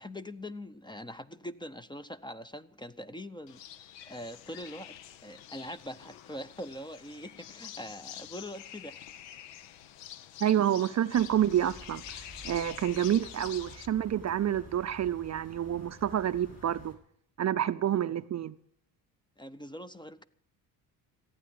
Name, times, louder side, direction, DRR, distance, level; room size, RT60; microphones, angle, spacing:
voice 1, 0.0-3.6 4.0-9.0 19.4-20.2, left 1 dB, 10° left, 0.7 m, -43 dB
sound 1, 3.5-13.9, left 10 dB, 80° left, 0.9 m, -47 dB
voice 2, 10.4-17.0 17.4-18.6, right 10 dB, 40° right, 0.6 m, -28 dB
Foley Street Late Evening Crickets Dog, 11.1-16.9, equal, 35° left, 4.0 m, -51 dB
15.5 x 8.9 x 8.5 m
supercardioid pair, 70°, 43 cm